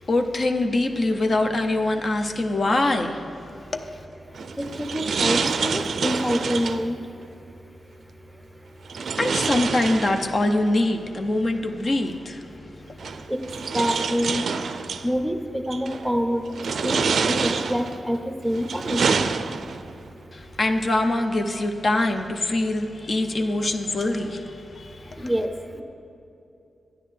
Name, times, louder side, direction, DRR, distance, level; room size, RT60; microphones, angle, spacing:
voice 1, 0.0-4.1 9.2-13.3 20.3-25.3, left 2 dB, 50° left, 4 dB, 0.6 m, -24 dB
sound 1, 4.3-6.9 8.9-10.6 11.9-12.0 13.0-15.1 15.7-16.1 16.5-18.0 18.5-19.9, right 5 dB, 80° right, 0.4 m, -26 dB
voice 2, 4.9-7.0 13.3-13.4 13.7-14.5 15.0-16.4 16.8-18.2 18.4-19.0 25.2-25.5, equal, ahead, 6 dB, 0.6 m, -26 dB
13.5 x 9.7 x 3.3 m, 2.8 s
wide cardioid pair, 95°, 0 cm